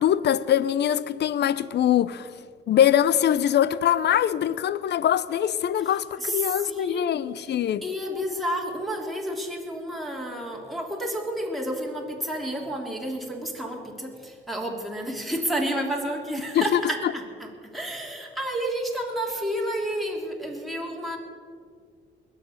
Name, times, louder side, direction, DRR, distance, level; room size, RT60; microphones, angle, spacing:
voice 1, 0.0-2.3 2.7-7.8 16.5-17.1, left 10 dB, 60° left, 0.6 m, -23 dB
voice 2, 6.2-7.2 7.8-21.2, right 1 dB, ahead, 3.1 m, -30 dB
20.5 x 8.3 x 6.5 m
cardioid pair, 90°, 20 cm